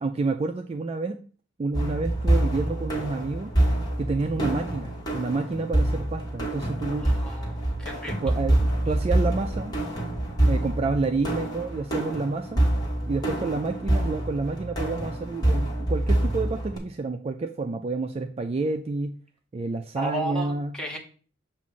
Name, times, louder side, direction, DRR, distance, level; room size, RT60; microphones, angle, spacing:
voice 1, 0.0-1.2 1.6-3.5 4.0-7.1 8.1-9.7 10.5-12.7 13.1-19.1 19.5-20.7, right 3 dB, 30° right, 6 dB, 0.3 m, -29 dB
sound 1, 1.7-16.8, right 1 dB, 20° left, 1.4 m, -26 dB
voice 2, 7.0-8.1 8.8-8.9 20.0-21.0, right 1 dB, 5° left, 0 dB, 1.1 m, -34 dB
7.2 x 2.5 x 5.4 m, 0.41 s
head